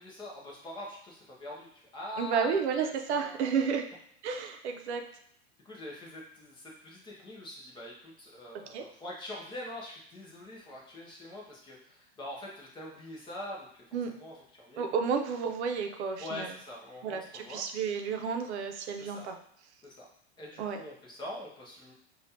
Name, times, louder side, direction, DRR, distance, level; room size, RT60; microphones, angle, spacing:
voice 1, 0.0-3.5 5.6-13.8 14.1-14.9 16.2-17.6 19.0-19.3 19.8-20.1 20.4-21.9, left 1 dB, 15° left, -3 dB, 0.6 m, -44 dB
voice 2, 2.2-3.9 4.2-5.0 8.7-8.8 13.9-14.1 14.8-16.5 17.0-19.4 20.6-20.8, right 6 dB, 85° right, 5 dB, 0.7 m, -31 dB
5.1 x 2.4 x 2.7 m, 0.70 s
supercardioid pair, 155°, 33 cm